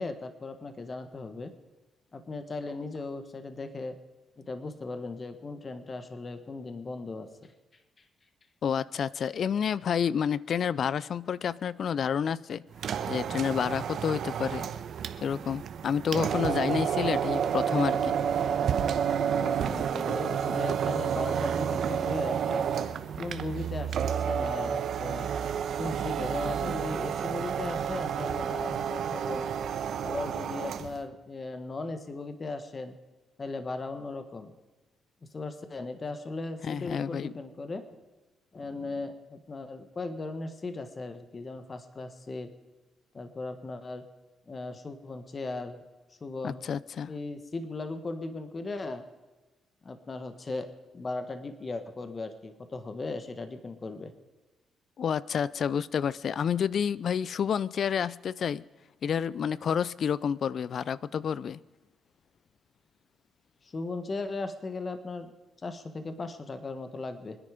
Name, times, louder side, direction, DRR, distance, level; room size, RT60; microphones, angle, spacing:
voice 1, 0.0-1.5 2.1-4.0 4.4-7.5 8.0-8.1 19.3-22.7 23.2-25.3 25.8-29.5 30.0-32.9 33.4-34.5 35.3-38.0 38.5-42.5 43.1-44.0 44.5-45.8 46.2-46.6 47.1-49.0 49.8-54.1 63.6-65.3 65.6-67.4, left 3 dB, 35° left, 1.5 m, -37 dB
voice 2, 8.6-12.6 13.1-14.7 15.2-18.2 36.6-37.3 46.4-47.1 55.0-58.6 59.0-61.6, left 7 dB, 55° left, 0.5 m, -29 dB
sound 1, 12.7-31.0, right 8 dB, 65° right, 1.0 m, -30 dB
25.5 x 9.9 x 5.1 m
cardioid pair, 90°, 0 cm